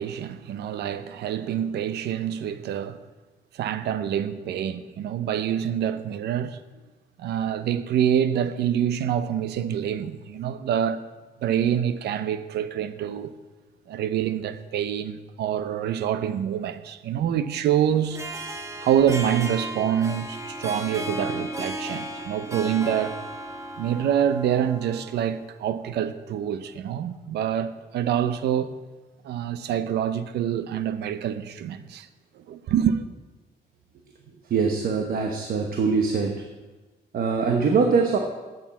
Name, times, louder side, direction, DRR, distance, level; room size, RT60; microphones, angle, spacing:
voice 1, 0.0-3.0 3.5-6.6 7.2-11.1 11.4-13.3 13.9-18.2 18.8-23.2 23.8-28.7 29.2-32.1 32.4-33.0, right 9 dB, 90° right, 0.7 m, -26 dB
Harp, 18.0-25.3, right 1 dB, 20° right, 1.1 m, -35 dB
voice 2, 34.5-36.4 37.1-38.2, right 5 dB, 60° right, 1.1 m, -23 dB
8.1 x 7.3 x 8.2 m
cardioid pair, 125°, 17 cm